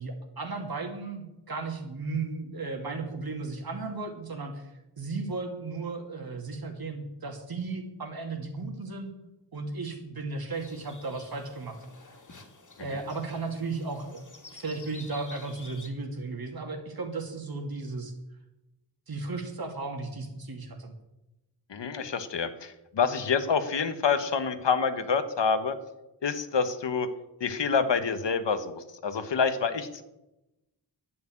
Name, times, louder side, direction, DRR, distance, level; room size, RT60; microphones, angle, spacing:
voice 1, 0.0-4.7 5.0-9.1 9.5-11.8 12.8-14.3 14.5-18.1 19.1-20.9, right 3 dB, 55° right, 4 dB, 2.6 m, -35 dB
sound 1, 10.5-15.9, left 3 dB, 45° left, 2.4 m, -50 dB
voice 2, 21.7-25.7 26.2-27.1 27.4-30.0, left 5 dB, 80° left, 9 dB, 1.4 m, -27 dB
11.5 x 9.4 x 8.6 m, 0.96 s
wide cardioid pair, 100°, 43 cm